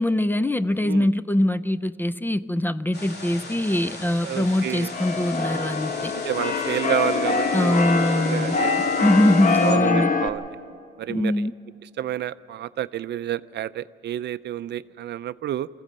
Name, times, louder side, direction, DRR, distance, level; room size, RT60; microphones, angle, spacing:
voice 1, 0.0-6.1 7.5-8.6 9.0-10.1 11.1-11.5, left 1 dB, 10° left, 15 dB, 0.4 m, -22 dB
sound 1, 2.9-9.8, left 2 dB, 55° left, 2.8 m, -38 dB
voice 2, 4.2-4.9 6.1-7.8 8.2-9.0 9.6-10.5 11.0-11.5 12.0-15.7, right 12 dB, 60° right, 15 dB, 0.5 m, -30 dB
Keyboard (musical), 4.4-10.3, left 4 dB, 40° left, 1.2 m, -25 dB
23.5 x 15.0 x 7.4 m, 2.6 s
cardioid pair, 90°, 20 cm